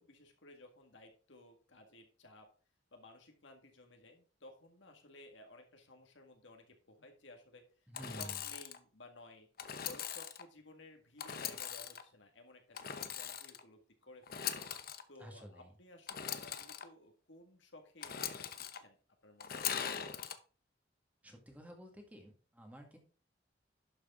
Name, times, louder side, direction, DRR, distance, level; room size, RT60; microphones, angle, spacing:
voice 1, 0.0-2.5 2.9-7.6 8.0-9.5 9.8-14.5 15.1-18.5 18.7-19.0 19.2-19.8, left 2 dB, 75° left, 4 dB, 2.0 m, -57 dB
Engine / Sawing, 7.9-8.8 9.6-10.4 11.2-12.0 12.7-13.6 14.2-15.0 16.1-16.8 18.0-18.8 19.4-20.3, left 8 dB, 50° left, 0.8 m, -41 dB
voice 2, 7.9-8.4 15.2-15.7 21.2-23.0, equal, 10° right, 2 dB, 1.9 m, -51 dB
11.5 x 6.5 x 3.7 m, 0.40 s
head